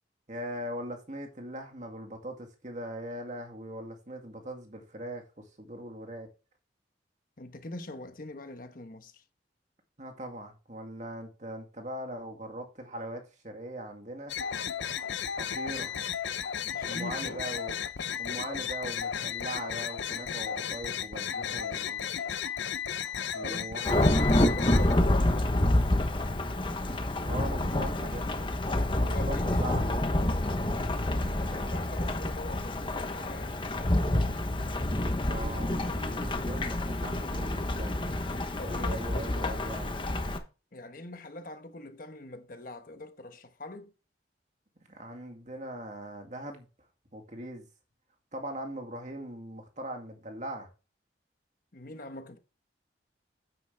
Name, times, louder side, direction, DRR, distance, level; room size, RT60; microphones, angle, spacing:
voice 1, 0.3-6.3 10.0-14.3 15.4-15.9 16.8-17.8 18.2-22.0 23.3-24.6 27.2-28.5 29.1-30.0 35.2-38.1 38.6-40.0 44.9-46.7 47.1-47.7 48.3-50.7, right 1 dB, 40° right, 2.1 m, -40 dB
voice 2, 7.4-9.2 16.7-17.4 23.4-23.8 24.2-25.7 28.8-29.6 31.5-33.6 38.6-39.0 40.7-43.9 51.7-52.4, left 1 dB, 50° left, 1.2 m, -43 dB
sound 1, 14.3-24.9, left 8 dB, 85° left, 0.7 m, -34 dB
Thunderstorm / Rain, 23.8-40.4, left 1 dB, 25° left, 1.0 m, -28 dB
9.2 x 7.6 x 3.5 m
head